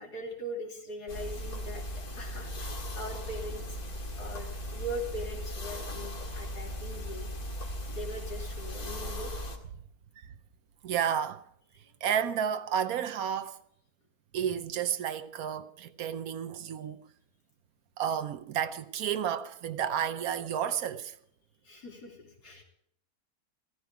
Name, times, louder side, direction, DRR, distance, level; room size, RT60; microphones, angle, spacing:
voice 1, 0.0-1.8 2.1-3.8 4.1-7.3 7.9-9.3 21.6-22.6, equal, 90° left, 3.5 m, -41 dB
sound 1, 1.1-9.6, equal, 70° left, 2.4 m, -38 dB
voice 2, 10.8-11.4 12.0-13.6 14.3-17.1 18.0-21.1, right 9 dB, 70° right, 1.1 m, -31 dB
15.0 x 14.0 x 4.7 m
omnidirectional pair, 1.7 m